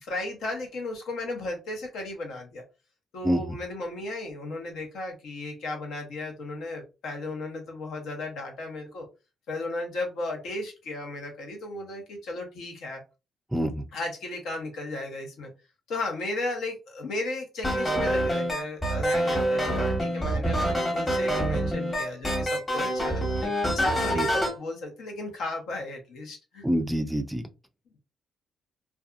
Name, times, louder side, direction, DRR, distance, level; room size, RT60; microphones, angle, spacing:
voice 1, 0.0-2.6 3.1-9.1 9.5-13.0 13.9-15.5 15.9-26.6, left 2 dB, 75° left, 1 dB, 0.9 m, -35 dB
voice 2, 3.2-3.6 13.5-13.8 24.1-24.3 26.6-27.4, equal, 5° right, 8 dB, 0.3 m, -26 dB
sound 1, 17.6-24.6, right 1 dB, 20° left, 1.1 m, -26 dB
2.6 x 2.3 x 2.4 m, 0.29 s
cardioid pair, 90°, 0 cm